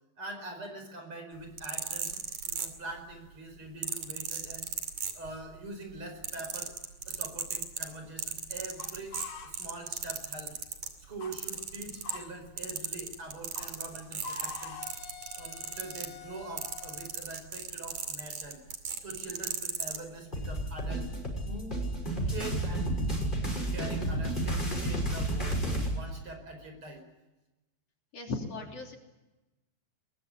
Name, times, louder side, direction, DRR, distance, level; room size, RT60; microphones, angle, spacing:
voice 1, 0.2-4.7 5.1-6.7 7.1-10.6 11.0-14.8 15.4-18.6 19.0-21.1 21.5-21.8 22.3-22.9 23.4-25.6 25.9-27.1 28.6-28.7, right 2 dB, 45° right, 5 dB, 5.8 m, -44 dB
sound 1, 1.4-3.1 3.8-5.6 5.9-10.9 11.3-12.3 12.6-20.0 20.7-20.9, right 7 dB, 70° right, 3.9 m, -36 dB
sound 2, 7.1-10.3 10.6-17.1, left 4 dB, 85° left, 3.5 m, -46 dB
sound 3, 20.3-25.9, right 1 dB, 15° left, 6.3 m, -31 dB
voice 2, 28.1-29.0, left 3 dB, 55° left, 2 dB, 4.0 m, -37 dB
22.0 x 22.0 x 9.9 m, 1.0 s
omnidirectional pair, 3.5 m